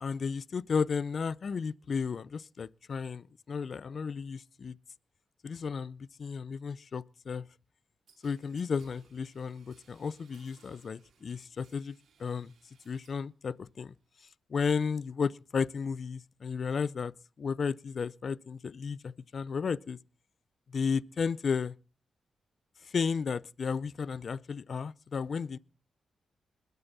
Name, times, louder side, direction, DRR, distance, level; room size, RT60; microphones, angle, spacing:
voice 1, 0.0-4.8 5.4-7.5 8.2-12.5 12.9-13.9 14.2-20.0 20.7-21.7 22.8-25.6, left 5 dB, 60° left, 0.6 m, -33 dB
sound 1, 8.1-13.3 13.6-14.3, right 6 dB, 75° right, 2.9 m, -65 dB
21.5 x 9.4 x 4.1 m
supercardioid pair, 40°, 0 cm